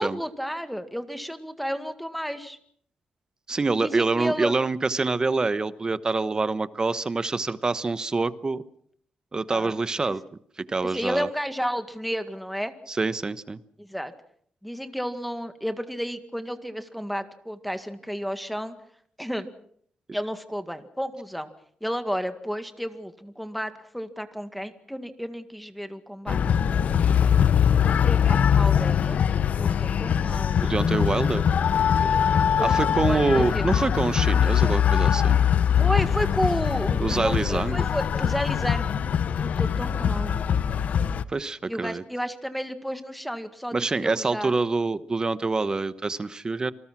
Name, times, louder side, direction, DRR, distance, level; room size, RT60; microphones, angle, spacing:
voice 1, 0.0-2.6 3.8-4.5 9.5-9.7 10.8-12.7 13.8-14.1 14.6-18.8 19.2-19.5 20.1-21.5 21.8-26.4 27.8-29.2 29.5-30.9 32.0-32.2 32.6-33.7 35.8-38.9 39.4-40.4 41.7-44.5, equal, ahead, 9 dB, 1.9 m, -32 dB
voice 2, 3.5-8.6 9.3-10.2 10.6-11.3 12.9-13.6 30.6-31.4 32.6-35.4 37.0-37.9 41.3-42.0 43.7-46.7, right 3 dB, 30° right, 15 dB, 1.1 m, -26 dB
sound 1, 26.3-41.2, left 8 dB, 65° left, 0.9 m, -22 dB
27.5 x 20.0 x 6.1 m, 0.63 s
cardioid pair, 110°, 3 cm